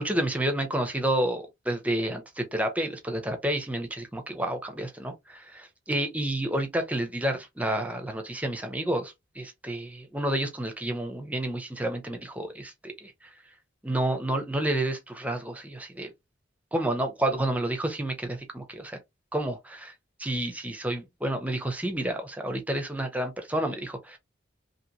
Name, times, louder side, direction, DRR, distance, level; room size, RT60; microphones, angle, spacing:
voice 1, 0.0-13.1 13.8-16.1 16.7-19.0 19.3-19.8 20.2-24.2, right 1 dB, 5° right, 0.6 m, -30 dB
2.9 x 2.7 x 2.7 m
head